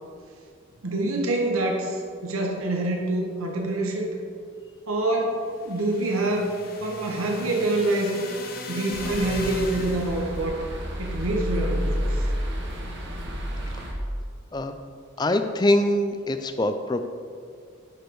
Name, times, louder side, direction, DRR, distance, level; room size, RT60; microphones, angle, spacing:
voice 1, 0.8-4.2 4.9-6.5 6.8-8.1 8.7-10.6 11.0-12.2, right 2 dB, 85° right, 1 dB, 1.2 m, -26 dB
sound 1, 5.4-10.4, left 3 dB, 45° left, 0.9 m, -38 dB
sound 2, 8.9-13.9, equal, 55° right, 1.5 m, -30 dB
voice 2, 15.2-17.0, left 1 dB, 20° left, 8 dB, 0.4 m, -23 dB
10.5 x 5.1 x 4.7 m, 2.2 s
head